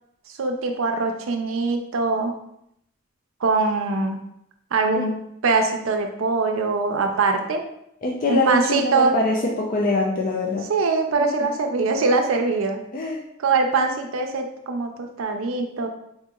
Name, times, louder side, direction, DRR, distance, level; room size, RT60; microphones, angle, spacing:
voice 1, 0.3-2.3 3.4-4.2 4.7-7.6 8.3-9.1 10.7-12.8 13.4-15.9, right 3 dB, 85° right, 5 dB, 0.5 m, -22 dB
voice 2, 8.0-10.7 11.2-11.5 12.9-13.2, left 2 dB, 40° left, -1 dB, 0.4 m, -23 dB
4.0 x 2.9 x 2.3 m, 0.75 s
head